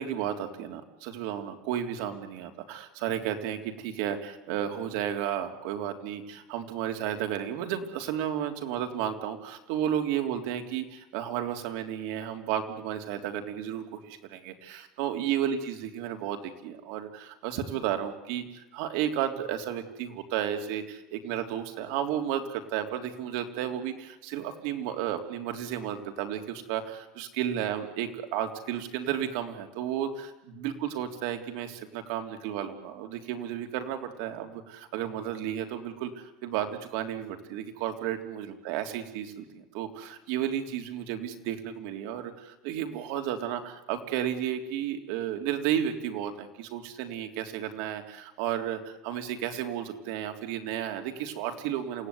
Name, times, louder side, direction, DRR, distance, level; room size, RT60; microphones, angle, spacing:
voice 1, 0.0-52.1, right 10 dB, 65° right, 5 dB, 3.3 m, -33 dB
28.0 x 18.0 x 9.7 m, 0.93 s
cardioid pair, 175°, 0 cm